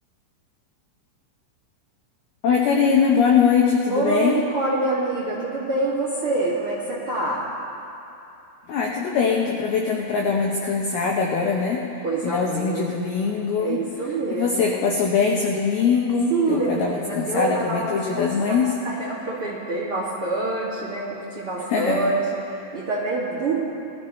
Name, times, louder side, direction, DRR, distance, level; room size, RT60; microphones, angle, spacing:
voice 1, 2.4-4.4 8.7-11.8 12.2-13.8 14.3-18.7 21.7-22.1, left 5 dB, 80° left, -1 dB, 2.2 m, -22 dB
voice 2, 3.9-7.4 12.0-12.9 13.6-14.7 16.3-22.2 22.5-23.6, right 2 dB, 45° right, -8 dB, 1.9 m, -26 dB
21.5 x 14.5 x 3.2 m, 2.8 s
omnidirectional pair, 5.8 m